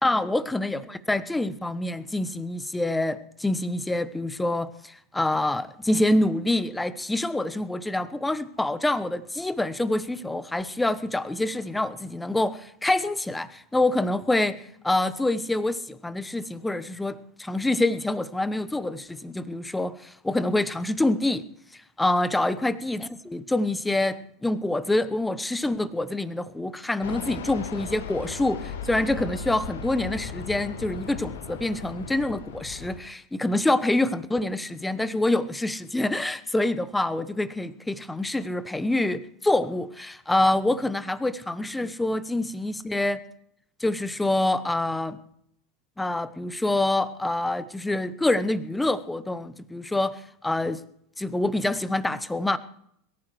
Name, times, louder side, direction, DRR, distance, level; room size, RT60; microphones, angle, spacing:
voice 1, 0.0-14.6 14.8-21.4 22.0-43.2 43.8-45.2 46.0-50.8 51.2-52.6, left 2 dB, 5° left, 15 dB, 1.0 m, -26 dB
Fixed-wing aircraft airplane, 27.0-33.0, left 5 dB, 65° left, 1.5 m, -37 dB
22.0 x 14.5 x 3.2 m, 0.70 s
figure-of-eight pair, 85°, 0 cm